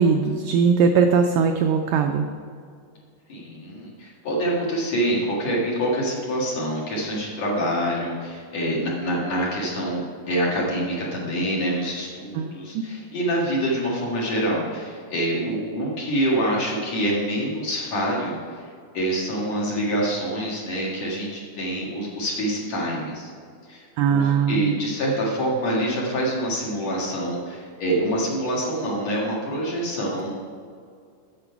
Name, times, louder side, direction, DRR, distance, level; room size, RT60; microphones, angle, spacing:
voice 1, 0.0-2.3 12.4-12.8 24.0-24.7, right 6 dB, 85° right, 5 dB, 1.9 m, -20 dB
voice 2, 3.3-18.4 18.9-23.3 23.7-30.3, right 1 dB, 50° left, -4 dB, 2.7 m, -26 dB
9.7 x 7.7 x 4.6 m, 2.2 s
omnidirectional pair, 4.4 m